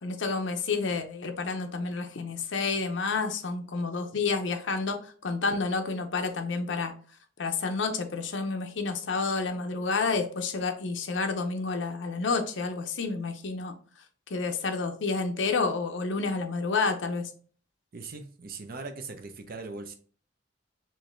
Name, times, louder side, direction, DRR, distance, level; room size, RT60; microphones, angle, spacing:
voice 1, 0.0-6.9 7.4-13.8 14.3-17.3, left 4 dB, 85° left, 0.6 m, -29 dB
voice 2, 17.9-20.0, right 3 dB, 55° right, 0.6 m, -40 dB
4.5 x 2.6 x 3.2 m
head